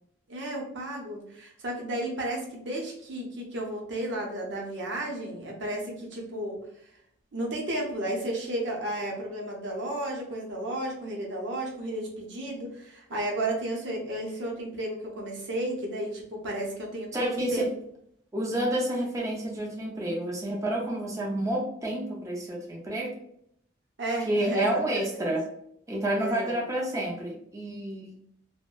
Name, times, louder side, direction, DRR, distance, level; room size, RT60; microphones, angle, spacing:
voice 1, 0.3-6.6 7.3-17.7 24.0-24.8 25.1-25.3 26.2-26.5, right 1 dB, 65° right, -1 dB, 0.7 m, -33 dB
voice 2, 17.1-17.7 18.3-23.2 24.3-25.4 25.9-28.1, right 1 dB, 15° right, -2 dB, 0.4 m, -29 dB
2.6 x 2.1 x 2.2 m, 0.70 s
head